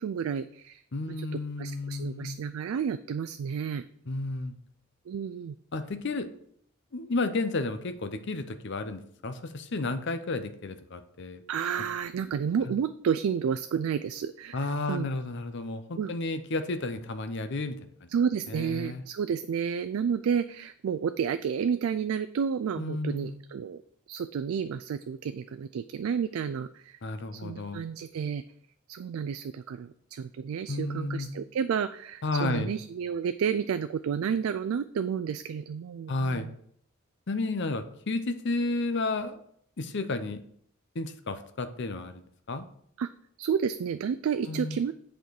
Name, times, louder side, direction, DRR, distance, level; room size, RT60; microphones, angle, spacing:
voice 1, 0.0-0.8 1.1-1.3 1.6-3.8 5.1-5.6 11.5-15.1 16.0-16.1 18.1-23.8 24.1-27.0 27.3-28.4 28.9-36.5 43.0-43.1 43.4-44.9, right 7 dB, 75° right, 11 dB, 0.3 m, -31 dB
voice 2, 0.9-2.4 4.1-4.5 5.7-6.3 6.9-11.4 12.7-12.8 14.5-18.1 18.5-19.0 22.8-23.4 27.0-27.8 30.7-31.3 32.2-32.7 36.1-36.5 37.3-39.4 39.8-40.4 40.9-42.6 44.5-44.8, left 2 dB, 55° left, 10 dB, 0.7 m, -32 dB
8.0 x 4.4 x 4.7 m, 0.65 s
head